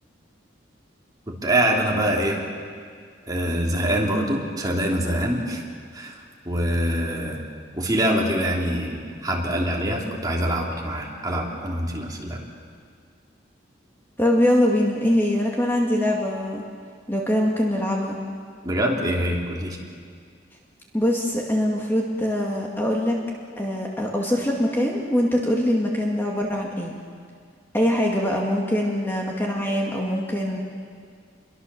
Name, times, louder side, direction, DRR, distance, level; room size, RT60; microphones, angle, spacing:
voice 1, 1.3-2.4 3.3-5.6 5.9-6.2 6.4-7.4 7.7-12.4 18.6-19.8, right 1 dB, 20° right, -2 dB, 3.3 m, -24 dB
voice 2, 14.2-16.6 17.1-18.2 20.9-23.2 23.6-27.0 27.7-30.6, left 1 dB, 10° left, -2 dB, 2.1 m, -23 dB
28.0 x 23.0 x 7.0 m, 2.1 s
head